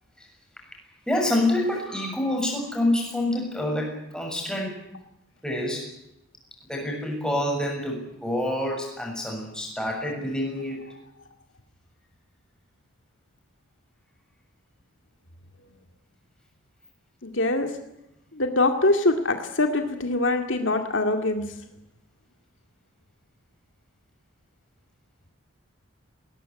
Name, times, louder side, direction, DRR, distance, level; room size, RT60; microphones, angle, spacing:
voice 1, 1.1-4.8 5.4-5.9 6.7-10.9, left 1 dB, 5° left, 1 dB, 6.9 m, -27 dB
voice 2, 17.2-17.7 18.4-21.5, left 2 dB, 60° left, 5 dB, 2.2 m, -23 dB
20.5 x 19.5 x 9.9 m, 0.83 s
head